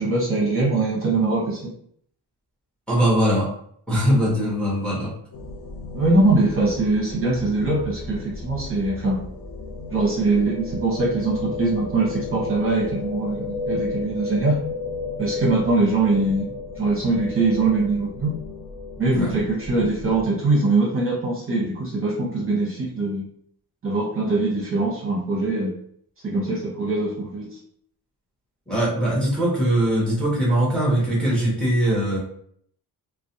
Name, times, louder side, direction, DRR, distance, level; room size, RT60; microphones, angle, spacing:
voice 1, 0.0-1.6 5.9-9.2 9.9-14.6 15.2-16.5 16.8-18.3 19.0-23.2 23.8-25.7 26.2-27.6, right 3 dB, 35° right, -4 dB, 0.8 m, -22 dB
voice 2, 2.9-3.5 3.9-5.1 19.1-19.3 28.7-32.2, equal, 5° left, -5 dB, 0.8 m, -21 dB
sound 1, 5.3-20.3, left 3 dB, 65° left, 0.5 m, -34 dB
2.4 x 2.1 x 2.7 m, 0.64 s
wide cardioid pair, 140°, 38 cm